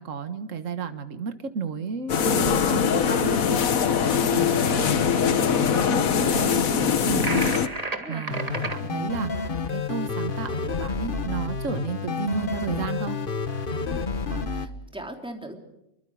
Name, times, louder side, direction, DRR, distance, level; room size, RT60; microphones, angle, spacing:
voice 1, 0.0-13.2, right 5 dB, 65° right, 9 dB, 1.8 m, -33 dB
sound 1, 2.1-7.7, left 7 dB, 80° left, 1.6 m, -22 dB
sound 2, 7.2-8.8, right 2 dB, 25° right, 2.0 m, -31 dB
voice 2, 7.9-8.5 13.9-15.6, right 1 dB, 5° right, 2 dB, 3.4 m, -40 dB
sound 3, 8.3-14.7, left 4 dB, 40° left, 1.3 m, -30 dB
30.0 x 23.5 x 4.9 m, 0.88 s
omnidirectional pair, 1.5 m